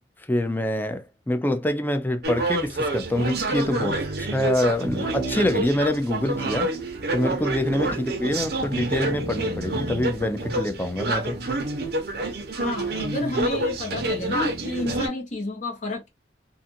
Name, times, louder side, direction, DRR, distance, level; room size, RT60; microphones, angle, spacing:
voice 1, 0.3-6.7 7.1-11.4, left 1 dB, 10° left, 0.4 m, -25 dB
sound 1, 2.2-15.1, right 2 dB, 60° right, 0.7 m, -28 dB
voice 2, 12.6-16.1, left 2 dB, 45° left, 1.0 m, -30 dB
2.5 x 2.5 x 2.6 m
head